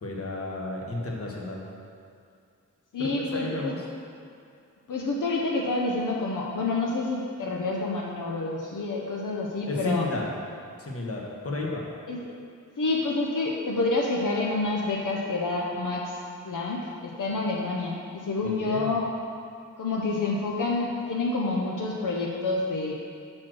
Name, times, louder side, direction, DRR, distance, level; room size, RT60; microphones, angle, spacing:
voice 1, 0.0-1.6 3.0-3.8 9.7-10.2 10.8-11.8 18.4-18.9, left 2 dB, 45° left, -2 dB, 1.1 m, -32 dB
voice 2, 2.9-3.7 4.9-10.0 12.1-12.3 12.8-16.2 16.4-19.1 19.8-22.9, left 3 dB, 80° left, -2 dB, 0.7 m, -28 dB
6.1 x 4.3 x 6.2 m, 2.4 s
wide cardioid pair, 110°, 31 cm